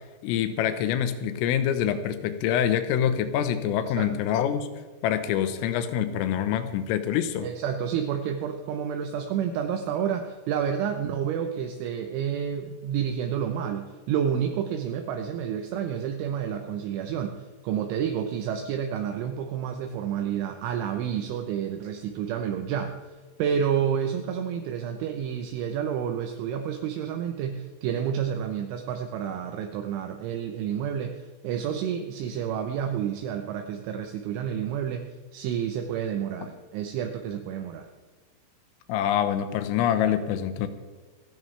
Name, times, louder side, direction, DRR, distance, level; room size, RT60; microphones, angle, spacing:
voice 1, 0.2-4.7 5.0-7.5 38.9-40.7, left 9 dB, 85° left, 10 dB, 3.6 m, -25 dB
voice 2, 7.4-23.0 23.4-35.1 35.3-37.9, right 8 dB, 80° right, 5 dB, 3.1 m, -29 dB
27.5 x 11.0 x 3.3 m, 1.4 s
omnidirectional pair, 5.9 m